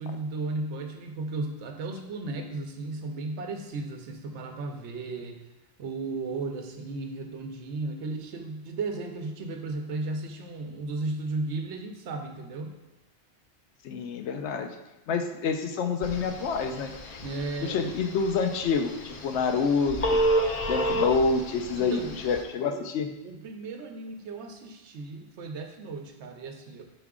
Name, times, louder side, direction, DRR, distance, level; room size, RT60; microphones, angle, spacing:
voice 1, 0.0-5.4 5.8-12.8 17.2-17.8 21.7-22.2 22.7-22.9 23.2-26.8, right 3 dB, 90° right, 5 dB, 1.0 m, -35 dB
voice 2, 13.8-14.8 15.1-17.2 17.6-20.2 20.7-23.1, left 5 dB, 85° left, 7 dB, 0.9 m, -27 dB
Telephone, 16.0-22.4, right 1 dB, 50° left, 0.5 m, -31 dB
5.8 x 4.8 x 3.6 m, 0.99 s
omnidirectional pair, 1.1 m